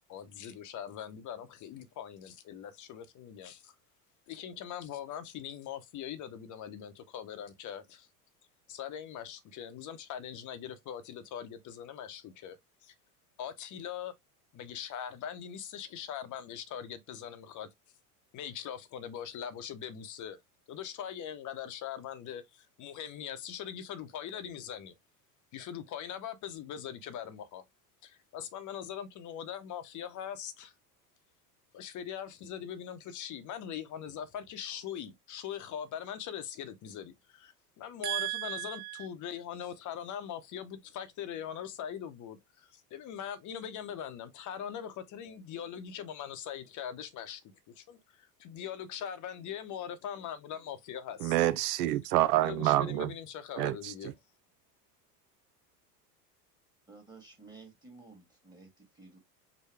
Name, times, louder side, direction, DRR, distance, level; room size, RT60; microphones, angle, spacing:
voice 1, 0.1-3.7 4.3-8.1 8.7-12.9 13.4-14.1 14.5-17.7 18.3-20.4 20.7-25.0 25.5-27.7 28.0-30.7 31.7-47.4 47.8-51.4 52.4-54.1, left 9 dB, 40° left, 0.9 m, -41 dB
voice 2, 38.0-39.1 51.2-53.1 53.6-54.1, right 15 dB, 70° right, 0.7 m, -29 dB
voice 3, 56.9-59.2, right 3 dB, 10° right, 1.5 m, -53 dB
4.8 x 2.2 x 3.4 m
hypercardioid pair, 95°, 48 cm